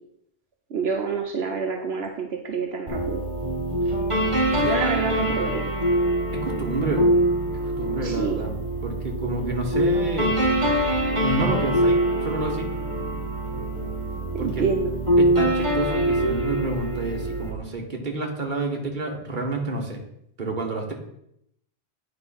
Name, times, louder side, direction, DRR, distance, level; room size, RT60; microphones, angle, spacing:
voice 1, 0.7-3.2 4.6-5.6 8.0-8.4 14.3-14.9, right 5 dB, 80° right, 2 dB, 1.1 m, -27 dB
sound 1, 2.9-17.5, right 1 dB, 30° right, 1.7 m, -24 dB
voice 2, 6.4-7.1 7.5-10.3 11.2-12.0 12.2-12.7 14.4-14.7 15.2-20.0 20.4-20.9, right 2 dB, 50° right, 1 dB, 1.5 m, -29 dB
9.0 x 3.3 x 5.7 m, 0.75 s
omnidirectional pair, 1.1 m